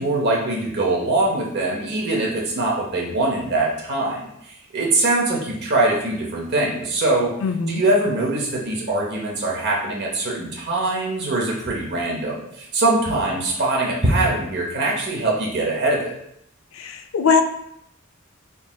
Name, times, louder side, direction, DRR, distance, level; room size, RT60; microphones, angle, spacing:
voice 1, 0.0-7.3 7.7-16.1, right 2 dB, 55° right, -2 dB, 0.7 m, -22 dB
voice 2, 7.4-7.8 16.7-17.4, left 5 dB, 75° left, 7 dB, 0.4 m, -20 dB
3.9 x 3.6 x 2.2 m, 0.75 s
head